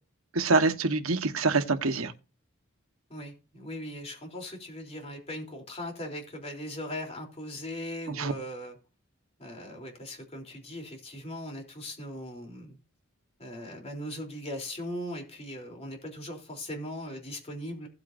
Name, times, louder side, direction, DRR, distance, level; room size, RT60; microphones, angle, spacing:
voice 1, 0.3-2.1 8.1-8.3, right 3 dB, 85° right, 1.3 m, -25 dB
voice 2, 3.1-8.8 9.4-12.8 13.4-17.9, left 1 dB, 30° left, 3.5 m, -39 dB
16.5 x 8.3 x 2.6 m
head